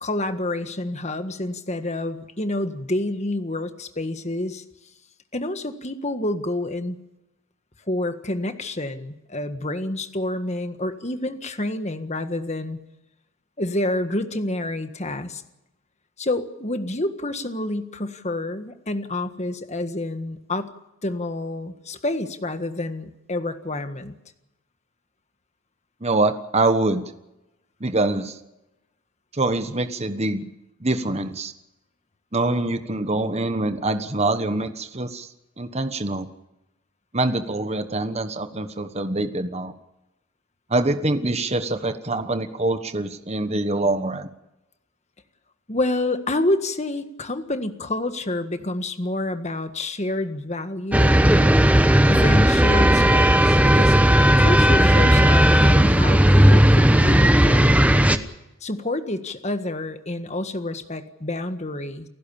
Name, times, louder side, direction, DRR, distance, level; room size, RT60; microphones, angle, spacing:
voice 1, 0.0-4.6 5.3-7.0 7.9-12.8 13.6-15.4 16.2-20.7 21.0-24.1 45.7-51.2 52.1-54.0 54.4-57.9 58.6-62.1, left 1 dB, 30° left, 9 dB, 1.6 m, -28 dB
voice 2, 26.0-27.0 27.8-28.4 29.3-30.5 30.8-31.5 32.3-35.3 35.6-36.3 37.1-39.7 40.7-44.3, right 2 dB, 30° right, 9 dB, 1.2 m, -24 dB
sound 1, 50.9-58.2, equal, 5° right, 1.0 m, -15 dB
29.0 x 15.5 x 7.1 m, 0.93 s
head